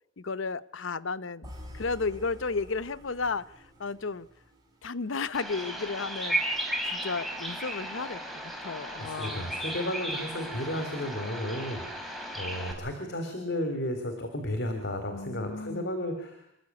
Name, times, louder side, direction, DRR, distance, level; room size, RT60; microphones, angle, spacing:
voice 1, 0.2-1.5 1.7-3.4 3.8-4.3 4.8-9.6 15.1-16.0, left 4 dB, 85° left, 16 dB, 0.9 m, -33 dB
sound 1, 1.4-5.5, left 1 dB, 20° right, 6.4 m, -48 dB
Bird vocalization bird call bird song, 5.3-12.7, right 1 dB, ahead, 4.8 m, -35 dB
voice 2, 9.0-16.5, left 1 dB, 60° left, 6 dB, 3.6 m, -33 dB
27.5 x 13.5 x 9.7 m, 0.76 s
head